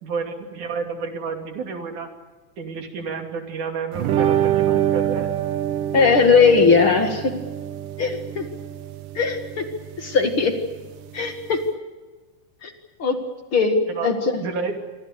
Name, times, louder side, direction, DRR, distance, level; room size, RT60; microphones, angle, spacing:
voice 1, 0.0-2.1 2.6-5.3 13.9-14.1 14.4-14.8, right 5 dB, 70° right, 4 dB, 4.3 m, -30 dB
sound 1, 3.9-11.7, right 11 dB, 85° right, 2.8 m, -26 dB
voice 2, 5.9-7.3 8.0-8.4 9.2-9.6 10.0-10.6 11.1-11.6 12.6-12.7 13.0-13.2 13.5-14.4, left 5 dB, 45° left, 5 dB, 2.4 m, -19 dB
27.0 x 24.5 x 6.7 m, 1.3 s
omnidirectional pair, 3.7 m